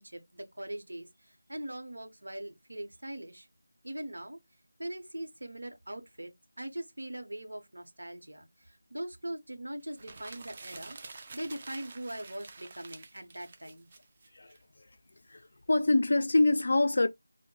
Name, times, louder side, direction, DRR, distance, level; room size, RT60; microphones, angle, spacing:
voice 1, 0.0-3.5 3.8-4.4 4.8-6.3 6.6-13.9, right 1 dB, 80° right, 0.8 m, -41 dB
sound 1, 9.9-14.6, right 3 dB, 25° right, 0.3 m, -48 dB
voice 2, 15.3-17.1, left 2 dB, 55° left, 0.3 m, -25 dB
2.2 x 2.0 x 3.0 m
figure-of-eight pair, 170°, 0 cm